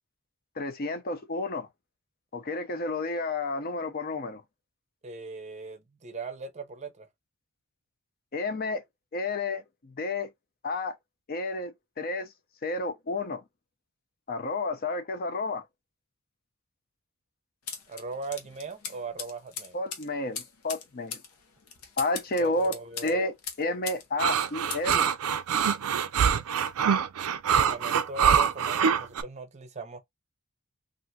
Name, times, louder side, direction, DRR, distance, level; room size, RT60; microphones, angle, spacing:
voice 1, 0.6-1.7 2.3-4.4 8.3-8.8 9.1-10.3 10.6-10.9 11.3-11.7 12.0-12.3 12.6-13.4 14.3-15.6 19.7-21.2 22.0-22.8 23.0-25.1, left 2 dB, 45° left, 0.6 m, -31 dB
voice 2, 5.0-7.1 17.9-19.8 22.4-23.2 27.6-30.0, right 4 dB, 30° right, 0.6 m, -39 dB
sound 1, 17.7-24.1 24.3-25.1, left 6 dB, 85° left, 0.8 m, -40 dB
sound 2, 24.2-29.2, right 7 dB, 85° right, 0.4 m, -24 dB
3.3 x 2.5 x 2.6 m
head